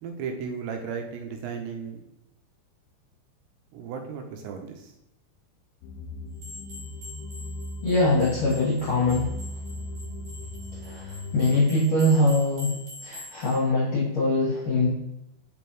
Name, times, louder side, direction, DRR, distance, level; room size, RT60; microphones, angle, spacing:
voice 1, 0.0-2.1 3.7-4.9, right 6 dB, 85° right, 3 dB, 2.9 m, -35 dB
sound 1, 5.8-11.6, left 1 dB, 85° left, 2.8 m, -38 dB
sound 2, 6.4-13.6, left 2 dB, 55° right, 1.7 m, -45 dB
voice 2, 7.8-9.3 10.8-12.7 13.0-14.9, left 2 dB, 55° left, -7 dB, 1.8 m, -23 dB
6.1 x 5.2 x 3.0 m, 0.89 s
omnidirectional pair, 5.3 m